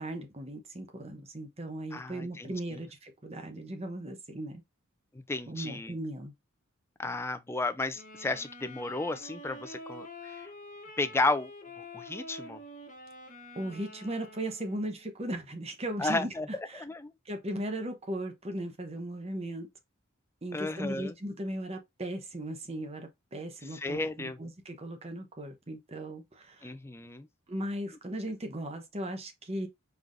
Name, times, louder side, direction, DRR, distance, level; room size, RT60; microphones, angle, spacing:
voice 1, 0.0-4.6 5.5-6.3 13.5-16.3 16.7-16.8 17.2-19.7 20.4-26.7 27.5-29.7, right 1 dB, 30° right, 0.9 m, -37 dB
voice 2, 1.9-2.8 5.3-6.0 7.0-10.5 11.0-11.5 11.8-12.6 16.0-16.5 16.8-17.1 20.5-21.1 23.7-24.4 26.6-27.3, left 2 dB, 10° left, 0.4 m, -33 dB
Wind instrument woodwind instrument, 7.9-15.1, left 1 dB, 40° left, 1.0 m, -47 dB
4.6 x 3.7 x 2.5 m
head